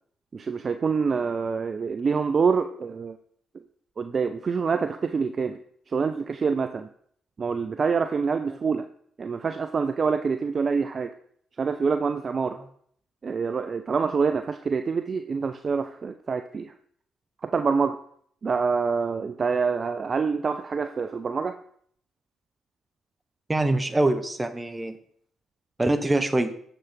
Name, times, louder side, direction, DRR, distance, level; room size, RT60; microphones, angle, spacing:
voice 1, 0.3-3.2 4.0-5.6 5.9-6.9 7.4-8.9 9.2-11.1 11.6-12.6 13.2-16.7 17.4-18.0 18.4-21.6, right 5 dB, 40° right, 8 dB, 0.3 m, -26 dB
voice 2, 23.5-24.9 25.8-26.5, right 2 dB, 20° right, 9 dB, 0.8 m, -24 dB
6.9 x 5.8 x 3.4 m, 0.62 s
figure-of-eight pair, 40°, 0 cm